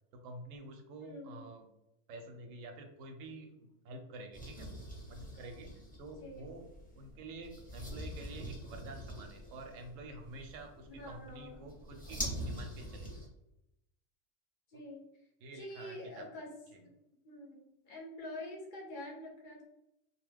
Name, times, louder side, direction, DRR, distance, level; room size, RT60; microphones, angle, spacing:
voice 1, 0.1-1.7 2.1-4.7 5.1-5.7 6.0-6.7 6.9-13.2 14.7-14.8 15.4-16.4 16.7-16.8, right 2 dB, 85° right, 4 dB, 1.0 m, -49 dB
voice 2, 1.0-1.4 6.2-6.5 11.0-11.7 14.7-15.0 15.5-16.5 17.2-19.6, left 1 dB, 50° left, -1 dB, 0.8 m, -46 dB
sound 1, 4.3-13.3, equal, 10° left, 0.7 m, -45 dB
2.7 x 2.2 x 3.3 m, 0.87 s
omnidirectional pair, 1.3 m